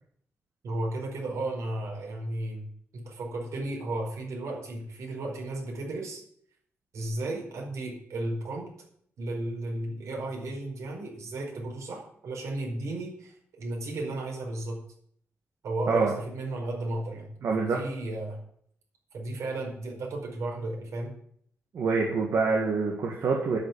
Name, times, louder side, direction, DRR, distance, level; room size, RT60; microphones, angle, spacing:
voice 1, 0.6-2.6 2.9-6.2 6.9-8.7 9.2-14.8 15.6-17.3 17.6-18.4 19.1-21.1, right 2 dB, 90° right, 0 dB, 4.8 m, -34 dB
voice 2, 17.4-17.8 21.7-23.6, right 4 dB, 70° right, -1 dB, 1.9 m, -26 dB
10.5 x 6.1 x 8.7 m, 0.66 s
wide cardioid pair, 150°, 5 cm